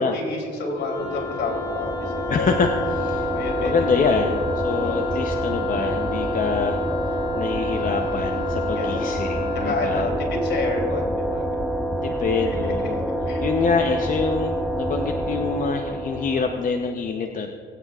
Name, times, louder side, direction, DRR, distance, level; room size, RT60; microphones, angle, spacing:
voice 1, 0.0-2.3 3.2-4.2 4.8-5.1 8.7-9.0 9.6-11.4 12.5-12.6 13.3-13.4, left 2 dB, 65° left, 0 dB, 3.0 m, -29 dB
Wind instrument woodwind instrument, 0.7-9.8, left 7 dB, 80° left, 2.6 m, -34 dB
sound 1, 1.0-16.8, equal, ahead, 0.7 m, -27 dB
voice 2, 2.3-3.3 3.6-6.8 7.3-10.1 12.0-17.5, left 4 dB, 45° left, 3 dB, 0.7 m, -25 dB
21.0 x 9.0 x 2.4 m, 2.4 s
cardioid pair, 90°, 20 cm